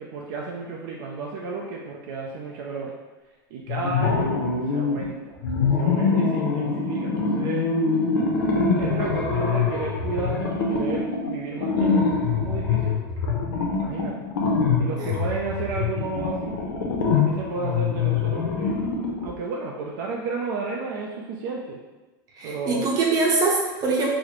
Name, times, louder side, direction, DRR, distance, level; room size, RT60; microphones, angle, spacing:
voice 1, 0.0-3.0 3.5-4.3 4.7-5.4 5.8-7.7 8.8-13.1 13.8-14.2 14.8-16.6 17.3-18.8 19.2-21.8 22.4-22.9, right 4 dB, 60° right, -2 dB, 0.4 m, -32 dB
sound 1, 3.7-5.0 5.4-19.3, left 4 dB, 80° left, 0.6 m, -24 dB
voice 2, 22.4-24.1, right 3 dB, 30° right, -3 dB, 0.8 m, -23 dB
4.0 x 2.1 x 3.0 m, 1.2 s
supercardioid pair, 135°, 12 cm